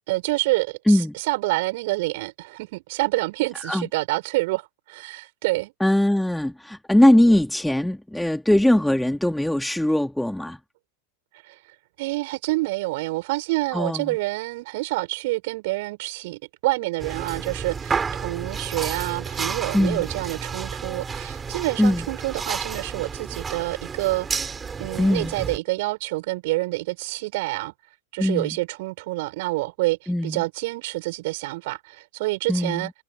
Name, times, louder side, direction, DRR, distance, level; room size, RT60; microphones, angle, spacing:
voice 1, 0.1-5.7 11.5-11.6 12.0-24.3 24.8-27.7 28.1-32.9, right 21 dB, 50° right, 6.4 m, -27 dB
voice 2, 5.8-10.6 13.7-14.2 19.7-20.0 21.8-22.1 25.0-25.3 28.2-28.6 30.1-30.4 32.5-32.9, left 1 dB, ahead, 3.2 m, -20 dB
sound 1, 17.0-25.6, right 5 dB, 15° right, 6.9 m, -31 dB
figure-of-eight pair, 90°, 0 cm